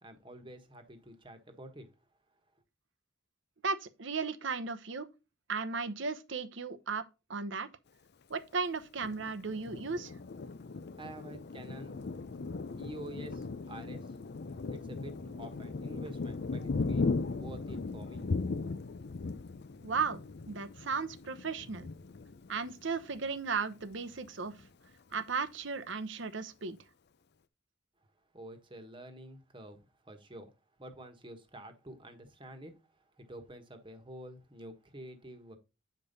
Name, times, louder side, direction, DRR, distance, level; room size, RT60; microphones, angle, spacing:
voice 1, 0.0-1.9 11.0-12.1 12.7-14.2 14.7-18.3 28.3-30.5 30.8-32.7 33.2-35.6, right 1 dB, 25° right, 1.3 m, -48 dB
voice 2, 3.6-5.0 5.5-7.0 7.3-7.7 8.3-10.1 19.8-20.2 20.5-21.9 22.5-24.5 25.1-26.8, right 5 dB, 65° right, 0.9 m, -35 dB
Thunder, 9.0-23.3 23.8-23.9 24.2-24.9, left 3 dB, 55° left, 0.5 m, -38 dB
8.4 x 5.3 x 4.1 m
head